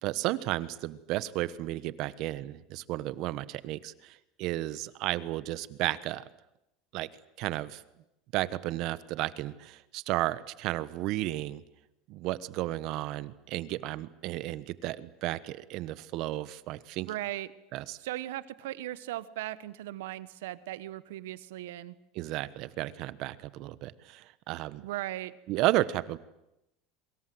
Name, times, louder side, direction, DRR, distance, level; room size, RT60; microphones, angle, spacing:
voice 1, 0.0-6.2 6.9-7.1 7.4-7.8 8.3-11.6 12.1-17.1 17.7-18.0 22.1-24.8 25.5-26.2, right 16 dB, 55° right, 16 dB, 1.2 m, -33 dB
voice 2, 17.1-17.5 18.0-21.9 24.8-25.3, right 15 dB, 90° right, 16 dB, 1.2 m, -37 dB
27.0 x 24.0 x 7.9 m, 0.88 s
supercardioid pair, 135°, 0 cm